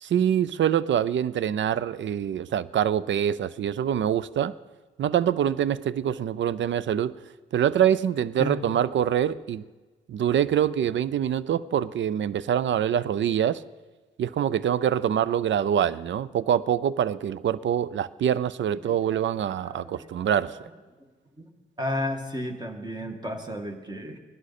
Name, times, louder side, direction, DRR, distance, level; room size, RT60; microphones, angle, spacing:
voice 1, 0.0-4.5 5.0-7.2 7.5-9.6 10.1-13.6 14.2-20.6, right 9 dB, 60° right, 0.5 m, -25 dB
voice 2, 18.8-20.3 21.4-21.5 21.8-24.2, equal, 20° right, 2.0 m, -33 dB
19.0 x 11.5 x 4.3 m
supercardioid pair, 55°, 21 cm